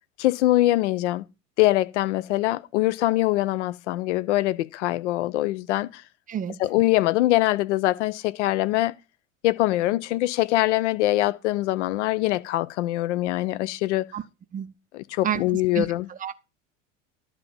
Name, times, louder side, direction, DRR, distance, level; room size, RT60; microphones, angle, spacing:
voice 1, 0.2-1.2 1.6-6.0 6.6-8.9 9.4-14.1 14.9-16.1, left 17 dB, 60° left, 0.7 m, -23 dB
voice 2, 6.3-6.6 14.1-14.2 14.5-14.7 15.2-15.4 15.7-16.3, right 9 dB, 20° right, 0.6 m, -29 dB
11.5 x 3.8 x 7.0 m
figure-of-eight pair, 75°, 39 cm